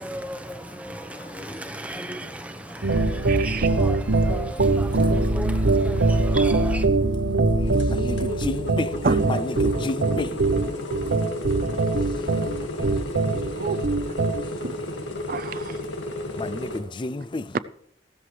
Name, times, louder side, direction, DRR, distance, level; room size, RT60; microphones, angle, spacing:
voice 1, 0.0-6.8, right 1 dB, 5° right, 1.0 m, -36 dB
sound 1, 2.8-14.4, right 2 dB, 75° right, 0.9 m, -22 dB
voice 2, 3.3-3.7 4.6-5.3 9.0-9.3 13.2-13.8 14.6-14.7 15.3-15.8 17.5-17.6, right 4 dB, 45° right, 0.4 m, -29 dB
sound 2, 7.7-16.8, left 1 dB, 75° left, 2.0 m, -33 dB
voice 3, 8.0-8.9 9.3-10.3 16.4-17.4, left 2 dB, 25° left, 0.4 m, -30 dB
15.5 x 13.0 x 3.3 m
head